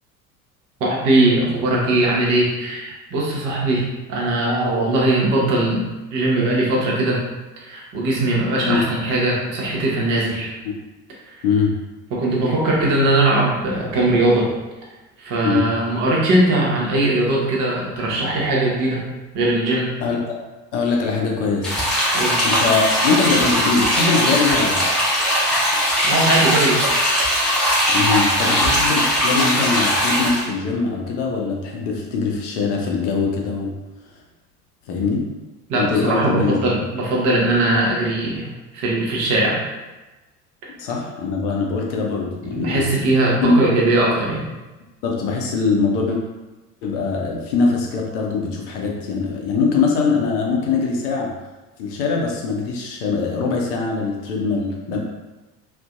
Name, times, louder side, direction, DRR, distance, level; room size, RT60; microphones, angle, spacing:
voice 1, 0.8-5.8 6.1-7.2 7.6-10.5 11.2-11.3 12.1-14.5 15.2-19.0 19.3-19.9 22.1-22.4 26.0-26.8 35.7-38.5 38.7-39.6 42.6-44.4, right 2 dB, 45° right, -3 dB, 0.8 m, -20 dB
voice 2, 11.4-11.8 15.4-15.7 20.0-20.4 20.7-21.8 22.4-24.8 27.9-33.7 34.9-35.3 35.7-36.6 40.8-42.8 43.4-43.7 45.0-46.2 46.8-51.3 51.8-55.0, left 4 dB, 50° left, -1 dB, 0.6 m, -22 dB
sound 1, 21.6-30.4, equal, ahead, 0.8 m, -19 dB
2.5 x 2.1 x 2.3 m, 1.1 s
figure-of-eight pair, 65°, 46 cm